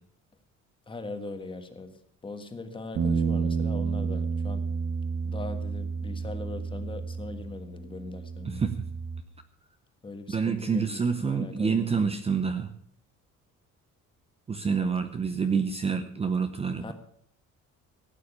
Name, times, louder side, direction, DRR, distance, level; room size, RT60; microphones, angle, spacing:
voice 1, 0.9-1.9 2.2-4.7 5.2-8.7 10.0-11.9 14.7-15.1 16.8-16.9, left 3 dB, 15° left, 8 dB, 1.4 m, -40 dB
sound 1, 3.0-9.2, right 5 dB, 50° right, 1.3 m, -31 dB
voice 2, 10.3-12.7 14.5-16.9, right 5 dB, 20° right, 9 dB, 0.7 m, -27 dB
16.0 x 9.2 x 6.9 m, 0.65 s
cardioid pair, 175°, 30 cm